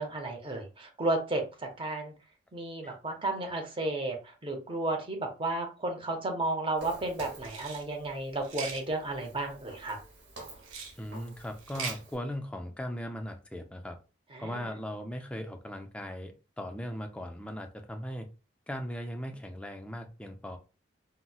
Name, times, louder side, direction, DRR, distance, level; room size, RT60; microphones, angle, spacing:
voice 1, 0.0-2.1 2.5-10.0 14.3-14.7, right 2 dB, 25° right, 3 dB, 0.6 m, -33 dB
Walk footsteps, 6.8-12.2, right 2 dB, 60° right, 1.0 m, -48 dB
sound 1, 7.4-7.8 8.4-8.8 10.6-10.9 11.6-12.0, right 5 dB, 85° right, 0.6 m, -39 dB
voice 2, 11.0-14.0 14.4-18.3 18.7-20.6, equal, 5° left, 5 dB, 0.3 m, -38 dB
4.0 x 2.1 x 2.3 m, 0.32 s
head